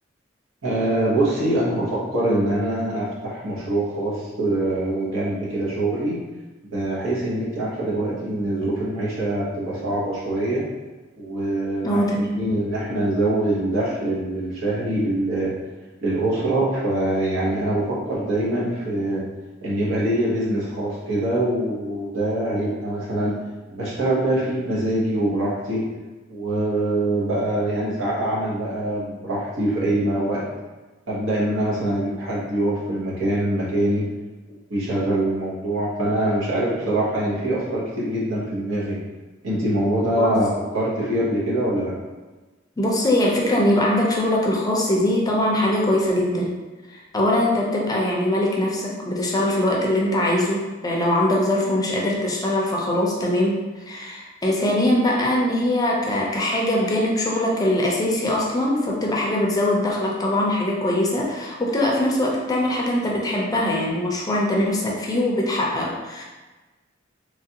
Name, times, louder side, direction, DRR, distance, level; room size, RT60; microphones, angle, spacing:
voice 1, 0.6-6.2 6.6-10.7 11.2-15.5 16.0-19.2 19.6-23.4 23.7-25.9 26.3-30.5 31.1-34.1 34.7-39.0 39.4-42.0, right 1 dB, 85° right, -6 dB, 1.0 m, -24 dB
voice 2, 11.8-12.5 40.2-40.5 42.8-46.6 46.9-66.2, left 1 dB, 20° left, -2 dB, 0.4 m, -22 dB
3.1 x 2.4 x 2.8 m, 1.2 s
head